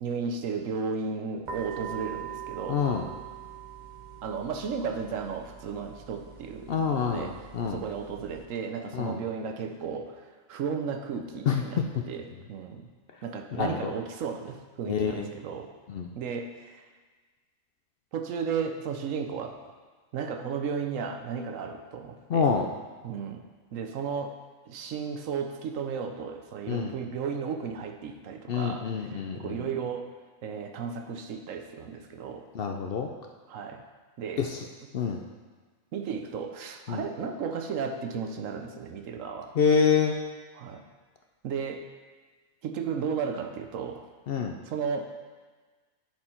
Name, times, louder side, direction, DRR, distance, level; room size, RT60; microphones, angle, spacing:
voice 1, 0.0-2.8 4.2-7.3 7.6-12.9 13.2-15.7 16.1-16.8 18.1-19.6 20.1-22.5 23.0-23.4 23.7-24.3 24.7-30.1 30.4-32.4 33.5-33.8 34.2-34.4 35.9-39.6 40.5-40.8 41.4-41.8 42.6-44.1 44.7-45.0, right 6 dB, 75° right, 5 dB, 1.1 m, -34 dB
sound 1, 1.4-8.4, right 9 dB, 50° right, 0.6 m, -43 dB
voice 2, 2.7-3.1 6.7-7.8 8.9-9.2 11.5-11.8 13.6-13.9 14.9-15.3 15.9-16.1 22.3-22.7 26.7-26.9 28.5-29.6 32.5-33.1 34.4-34.6 34.9-35.2 36.9-37.0 39.6-40.2 44.3-44.6, left 6 dB, 60° left, 3 dB, 0.7 m, -27 dB
10.5 x 4.7 x 4.4 m, 1.4 s
omnidirectional pair, 1.4 m